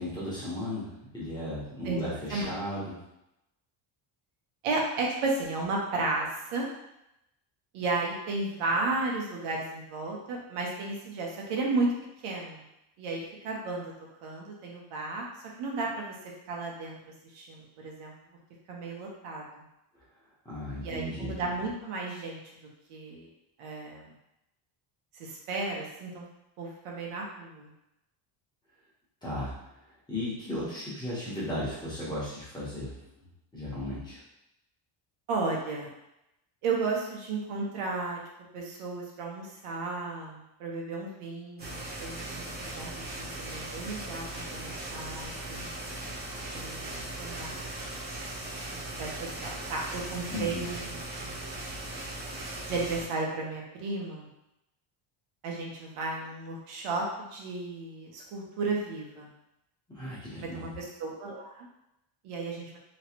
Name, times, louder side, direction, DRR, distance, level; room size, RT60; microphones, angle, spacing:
voice 1, 0.0-2.9 20.4-21.3 29.2-29.5 30.1-32.9 33.5-34.2 50.3-50.6 59.9-60.7, left 1 dB, 10° left, -9 dB, 1.1 m, -35 dB
voice 2, 4.6-6.7 7.7-11.9 12.2-12.6 13.0-13.9 14.2-15.3 15.6-16.2 16.5-17.0 17.3-18.1 18.7-19.6 20.8-22.4 22.9-23.3 23.6-24.1 25.1-26.2 26.6-27.7 35.3-35.9 36.6-38.2 38.5-45.7 46.5-47.6 49.0-51.3 52.6-54.3 55.4-59.3 60.4-61.7 62.2-62.8, right 3 dB, 85° right, -2 dB, 1.1 m, -34 dB
sound 1, 41.6-53.0, right 1 dB, 20° right, 0.9 m, -38 dB
3.2 x 3.1 x 2.9 m, 0.87 s
cardioid pair, 180°, 50 cm